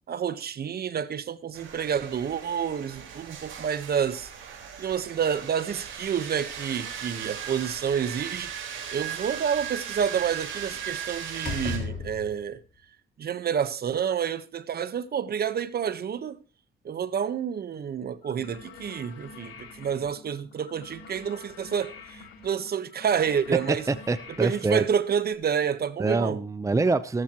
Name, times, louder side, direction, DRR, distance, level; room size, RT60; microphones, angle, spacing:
voice 1, 0.1-4.3 4.8-8.5 8.9-12.6 13.2-16.4 16.8-23.9 24.4-26.4, right 8 dB, 50° right, 1.2 m, -29 dB
sound 1, 1.5-11.8, right 8 dB, 75° right, 4.1 m, -38 dB
Slam, 7.5-8.5 10.7-10.9 11.3-12.6, left 4 dB, 40° left, 3.7 m, -36 dB
sound 2, 18.2-25.3, left 5 dB, 85° left, 3.6 m, -47 dB
voice 2, 23.7-24.9 26.0-27.2, right 3 dB, 15° right, 0.7 m, -25 dB
14.5 x 14.0 x 3.0 m
cardioid pair, 90°, 20 cm